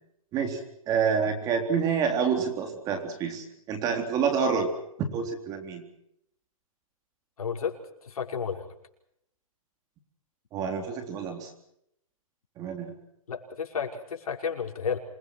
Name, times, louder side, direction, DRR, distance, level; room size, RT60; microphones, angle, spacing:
voice 1, 0.3-4.7 5.0-5.8 10.5-11.5 12.6-13.0, right 6 dB, 20° right, 6 dB, 3.8 m, -28 dB
voice 2, 7.4-8.7 13.3-15.0, left 6 dB, 85° left, 2 dB, 5.4 m, -32 dB
27.5 x 21.5 x 6.2 m, 0.75 s
hypercardioid pair, 160°, 18 cm